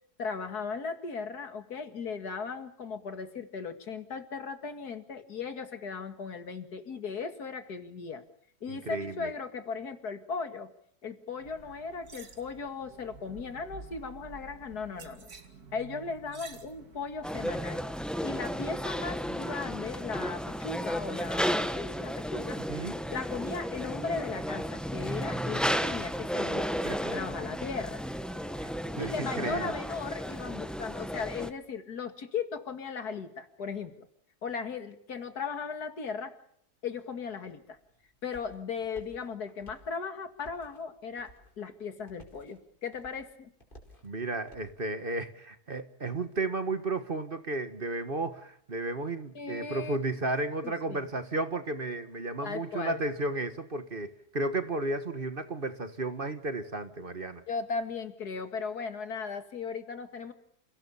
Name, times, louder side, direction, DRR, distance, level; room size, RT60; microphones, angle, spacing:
voice 1, 0.2-8.2 8.6-10.7 11.0-15.3 15.7-17.8 18.2-22.6 23.1-26.7 27.0-28.1 28.9-34.1 34.4-36.4 36.8-37.8 38.2-43.5 49.3-50.3 50.6-51.1 52.4-53.0 57.5-60.3, left 5 dB, 80° left, 9 dB, 2.6 m, -37 dB
voice 2, 8.7-9.3 22.7-22.9 26.8-27.2 28.6-28.7 29.0-29.6 44.0-57.4, right 2 dB, 35° right, 10 dB, 1.5 m, -33 dB
sound 1, 11.4-17.5, right 4 dB, 75° right, 2.8 m, -50 dB
sound 2, 17.2-31.5, equal, ahead, 1.0 m, -33 dB
sound 3, 37.6-44.8, equal, 30° left, 5.2 m, -56 dB
29.0 x 17.0 x 7.1 m, 0.72 s
omnidirectional pair, 1.6 m